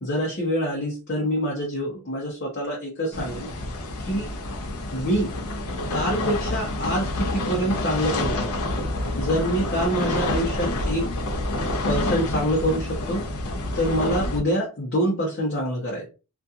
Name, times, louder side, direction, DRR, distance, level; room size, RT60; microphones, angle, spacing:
voice 1, 0.0-3.5 4.0-4.3 4.9-5.4 5.9-8.7 9.2-11.1 11.9-13.2 13.7-16.1, equal, 50° left, 0.8 m, -26 dB
sound 1, 3.1-14.4, left 1 dB, 85° left, 0.7 m, -28 dB
2.7 x 2.4 x 2.4 m
head